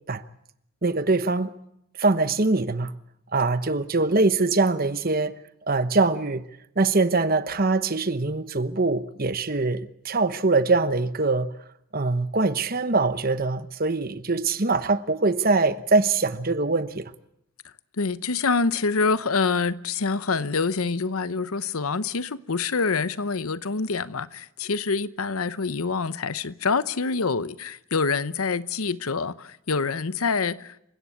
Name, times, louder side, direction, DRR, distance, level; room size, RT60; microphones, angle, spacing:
voice 1, 0.8-1.5 2.0-2.9 3.3-5.3 5.7-6.4 6.8-11.5 11.9-17.1, right 3 dB, 45° right, 1.1 m, -23 dB
voice 2, 18.0-30.8, left 4 dB, 85° left, 0.9 m, -26 dB
28.0 x 16.5 x 8.4 m
head